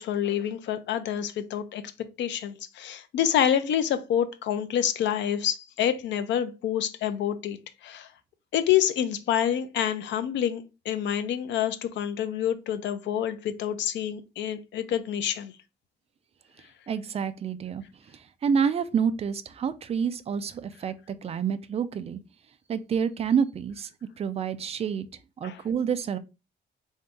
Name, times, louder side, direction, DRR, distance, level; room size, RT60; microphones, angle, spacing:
voice 1, 0.0-1.8 2.2-8.1 8.5-15.5 25.4-25.6, left 10 dB, 80° left, 0.5 m, -27 dB
voice 2, 16.9-17.8 18.4-22.2 22.7-23.9 24.2-25.1 25.4-26.2, right 7 dB, 35° right, 0.4 m, -28 dB
3.8 x 2.7 x 3.4 m
cardioid pair, 150°, 18 cm